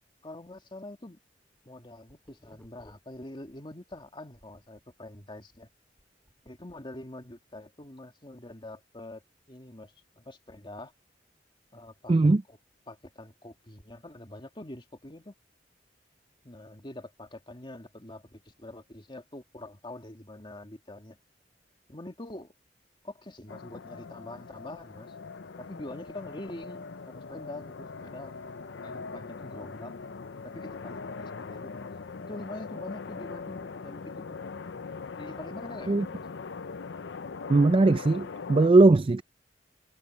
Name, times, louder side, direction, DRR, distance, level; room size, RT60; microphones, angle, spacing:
voice 1, 0.2-1.2 1.7-5.7 6.4-9.2 9.5-10.9 11.7-12.1 12.5-12.6 12.9-15.3 16.4-21.2 21.9-22.5 23.0-25.1 25.6-28.5 28.8-29.9 30.4-31.9 32.2-34.4 35.2-36.2, left 1 dB, 30° left, 2.2 m, -44 dB
sound 1, 1.5-4.0 4.3-6.7, equal, 10° left, 5.4 m, -61 dB
voice 2, 12.1-12.4 35.9-36.1 37.5-39.2, right 2 dB, 30° right, 0.4 m, -20 dB
sound 2, 23.5-38.7, left 4 dB, 75° left, 0.6 m, -41 dB
head